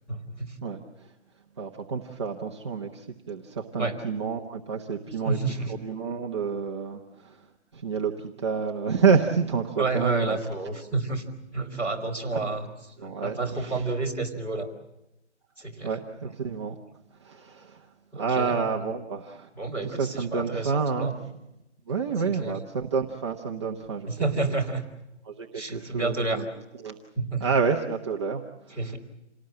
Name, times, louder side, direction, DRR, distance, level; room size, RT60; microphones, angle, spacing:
voice 1, 0.1-0.6 3.8-4.0 5.2-5.7 9.8-12.7 13.0-14.7 15.6-16.0 18.1-18.5 19.5-21.1 22.2-22.6 24.1-24.8 25.5-26.4 27.1-27.5 28.7-29.0, right 3 dB, 5° left, -4 dB, 2.9 m, -30 dB
voice 2, 0.6-1.1 1.6-5.4 5.8-7.4 7.7-10.4 13.0-13.8 15.8-16.8 17.2-17.9 18.1-19.5 20.0-21.1 21.9-24.1 25.3-26.4 26.8-27.0 27.4-28.8, right 5 dB, 25° right, 0 dB, 1.0 m, -29 dB
28.0 x 19.0 x 7.7 m, 0.92 s
hypercardioid pair, 170°, 35 cm